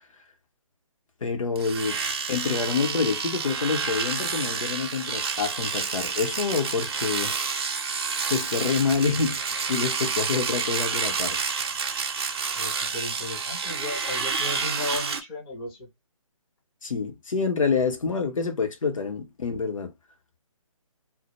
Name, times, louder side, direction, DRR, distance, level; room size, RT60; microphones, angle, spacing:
voice 1, 1.2-2.0 2.3-7.5 8.1-11.4 16.8-19.9, left 5 dB, 65° left, 0.8 m, -27 dB
Domestic sounds home sounds, 1.6-15.2, right 5 dB, 45° right, 0.5 m, -29 dB
voice 2, 12.6-15.9, left 2 dB, 10° left, 0.5 m, -35 dB
2.1 x 2.1 x 2.9 m
figure-of-eight pair, 155°, 18 cm